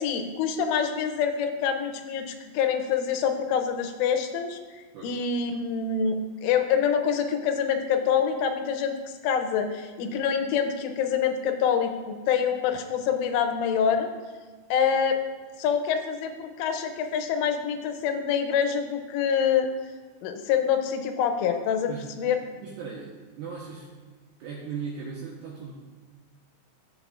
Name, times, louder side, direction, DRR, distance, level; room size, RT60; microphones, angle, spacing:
voice 1, 0.0-4.6 5.0-9.0 9.2-14.1 14.7-15.2 15.6-19.7 20.2-22.4, left 7 dB, 80° left, 5 dB, 3.1 m, -26 dB
voice 2, 21.9-23.9 24.4-25.8, right 6 dB, 80° right, -4 dB, 2.4 m, -38 dB
13.5 x 7.5 x 2.4 m, 1.4 s
omnidirectional pair, 5.8 m